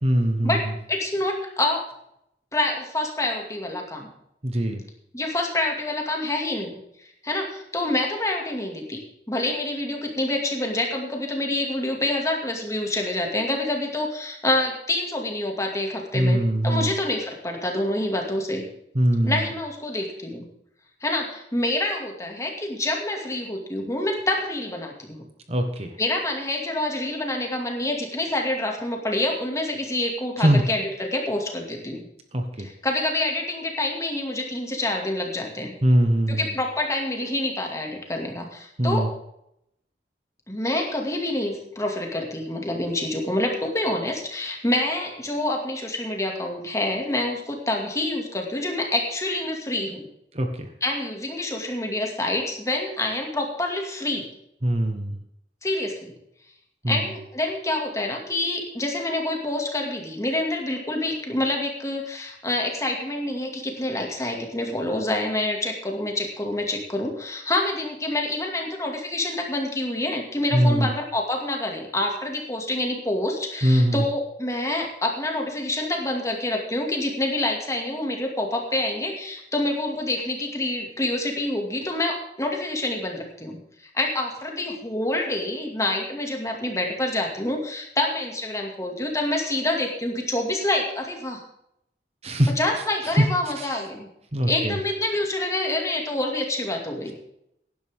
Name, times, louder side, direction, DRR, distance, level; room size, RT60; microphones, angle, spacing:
voice 1, 0.0-0.7 4.4-4.8 16.1-16.9 18.9-19.5 25.5-25.9 30.4-30.6 32.3-32.7 35.8-36.5 38.8-39.1 50.3-50.7 54.6-55.2 56.8-57.1 70.5-70.9 73.6-74.0 92.2-92.5 93.0-93.3 93.5-93.8 94.3-94.8, right 1 dB, 35° right, 5 dB, 1.3 m, -21 dB
voice 2, 0.9-1.8 2.5-4.1 5.1-6.8 7.2-9.0 9.3-18.6 19.2-20.5 21.0-25.2 26.0-32.0 32.6-35.7 36.3-39.1 40.5-50.1 50.8-54.3 55.6-56.1 56.9-83.6 83.9-91.4 92.6-94.1 94.5-97.1, left 1 dB, 20° left, 2 dB, 2.2 m, -27 dB
17.0 x 11.0 x 3.7 m, 0.77 s
head